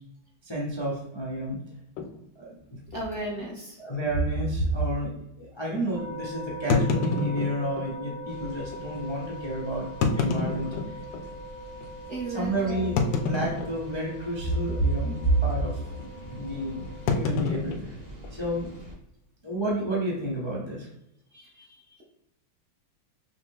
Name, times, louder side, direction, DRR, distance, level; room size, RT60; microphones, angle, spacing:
voice 1, 0.4-1.6 2.3-2.8 3.8-11.0 12.3-15.8 16.3-16.8 17.1-18.0 18.3-18.7 19.4-20.9, right 1 dB, 45° left, -5 dB, 0.3 m, -29 dB
sound 1, 2.0-2.1 2.9-3.0 3.3-3.4 4.0-4.1 6.7-7.9 8.7-8.8 9.9-11.3 11.8-11.9 13.0-14.1 14.3-14.7 14.9-15.3 17.1-18.7, left 4 dB, 75° left, 1.2 m, -28 dB
voice 2, 2.9-3.8 10.6-10.7 12.1-12.9 21.3-22.0, right 1 dB, 45° right, -3 dB, 1.0 m, -36 dB
sound 2, 5.9-17.1, equal, 85° right, 2.4 m, -42 dB
sound 3, 8.3-19.0, equal, 20° right, 0.5 m, -45 dB
5.8 x 2.2 x 3.6 m, 0.83 s
omnidirectional pair, 2.2 m